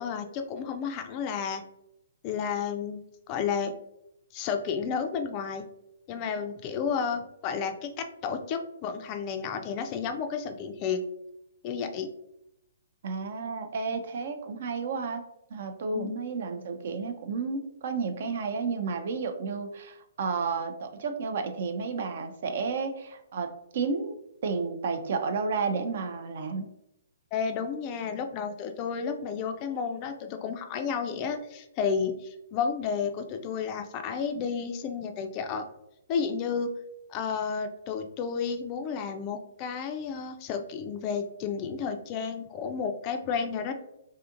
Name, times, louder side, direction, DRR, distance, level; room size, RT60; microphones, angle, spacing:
voice 1, 0.0-1.6 2.2-3.7 4.3-5.6 6.1-11.0 11.6-12.1 15.9-16.2 27.3-35.6 36.1-36.7 37.1-43.7, left 6 dB, 35° left, 7 dB, 0.3 m, -32 dB
voice 2, 13.0-15.2 15.5-26.7, right 4 dB, 55° right, 6 dB, 0.4 m, -32 dB
2.7 x 2.5 x 2.5 m, 0.81 s
figure-of-eight pair, 125°, 0 cm